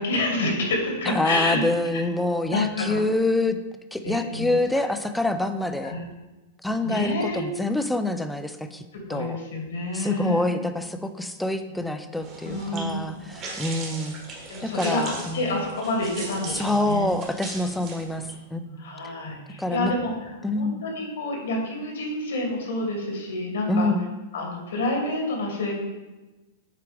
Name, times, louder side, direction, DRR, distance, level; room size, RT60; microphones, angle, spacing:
voice 1, 0.0-1.6 1.9-2.0 2.5-3.0 4.0-4.6 5.8-6.0 6.8-7.4 8.9-10.4 12.4-13.0 14.5-15.0 15.3-17.1 18.6-23.9 24.3-25.7, left 2 dB, 90° left, 0 dB, 2.4 m, -28 dB
voice 2, 1.1-3.6 3.9-5.9 6.6-8.8 9.1-9.4 9.9-14.1 14.6-15.5 16.5-18.7 19.6-19.9 20.4-20.8 23.7-24.0, left 2 dB, 5° left, 8 dB, 0.4 m, -26 dB
sound 1, 12.2-18.4, right 3 dB, 30° right, 1.6 m, -39 dB
8.3 x 4.6 x 3.4 m, 1.1 s
supercardioid pair, 150°, 0 cm